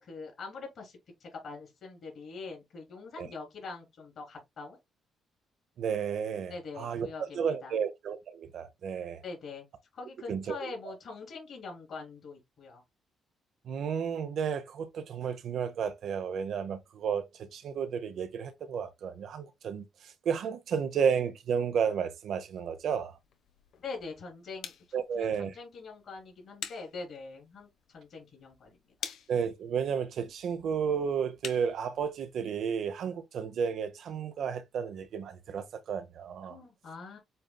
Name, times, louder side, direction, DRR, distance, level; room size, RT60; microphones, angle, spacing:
voice 1, 0.0-4.8 6.5-7.8 9.2-9.6 9.9-12.8 23.8-24.7 25.1-27.7 27.9-28.8 36.4-37.2, left 4 dB, 55° left, 3.1 m, -43 dB
voice 2, 5.8-9.2 10.3-10.8 13.6-23.2 24.9-25.6 29.3-36.6, right 7 dB, 65° right, 0.7 m, -32 dB
sound 1, 22.6-32.3, left 8 dB, 75° left, 0.8 m, -48 dB
7.8 x 2.6 x 2.2 m
cardioid pair, 90°, 0 cm